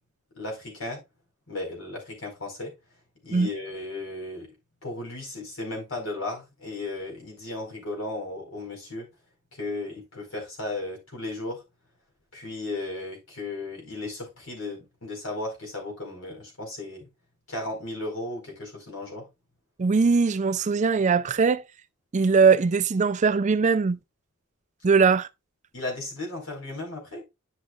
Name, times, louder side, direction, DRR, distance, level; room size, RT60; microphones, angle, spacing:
voice 1, 0.3-1.0 1.5-2.7 3.2-4.5 4.8-9.1 9.5-11.6 12.3-17.1 17.5-19.2 25.7-27.2, left 2 dB, 70° left, 4.5 m, -35 dB
voice 2, 19.8-21.6 22.1-24.0 24.8-25.3, right 5 dB, 35° right, 0.4 m, -21 dB
10.5 x 6.4 x 2.4 m
head